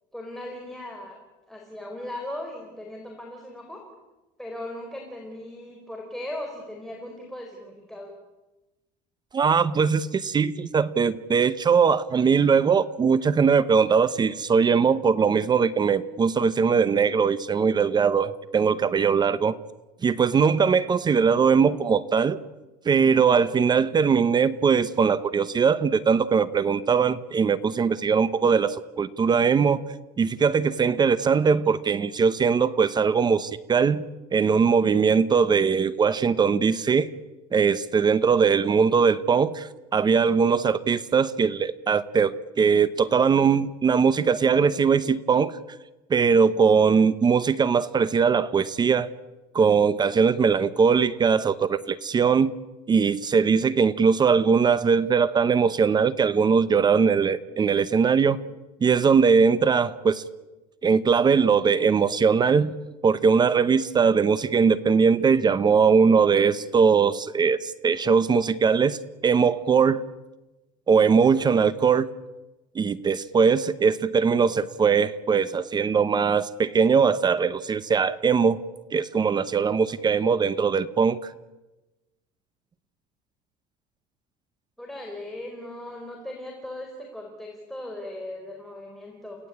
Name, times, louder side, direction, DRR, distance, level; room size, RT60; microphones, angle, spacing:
voice 1, 0.1-1.2 1.5-3.8 4.4-8.1 84.8-89.4, left 1 dB, ahead, 0 dB, 4.4 m, -38 dB
voice 2, 9.3-19.6 20.0-22.4 22.8-29.8 30.2-34.0 34.3-37.1 37.5-45.6 46.1-49.1 49.5-52.5 52.9-58.4 58.8-60.2 60.8-62.7 63.0-70.0 70.9-72.1 72.7-78.6 78.9-81.3, right 6 dB, 25° right, 16 dB, 0.8 m, -21 dB
29.5 x 17.5 x 8.6 m, 1.1 s
cardioid pair, 140°, 18 cm